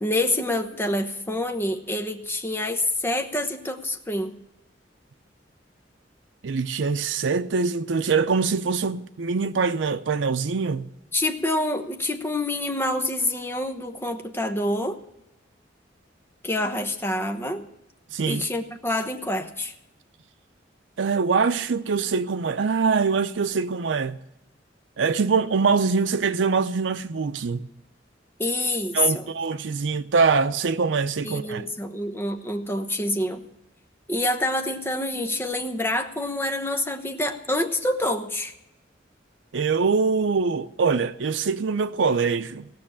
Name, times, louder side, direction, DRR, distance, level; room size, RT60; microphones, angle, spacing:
voice 1, 0.0-4.3 11.1-15.0 16.4-17.7 18.3-19.7 28.4-29.2 31.2-33.5 34.1-38.5, left 1 dB, 15° left, 1.1 m, -27 dB
voice 2, 6.4-10.9 18.1-18.5 21.0-24.2 25.0-27.7 28.9-31.6 39.5-42.7, right 5 dB, 90° right, 0.6 m, -23 dB
17.0 x 6.3 x 8.6 m
head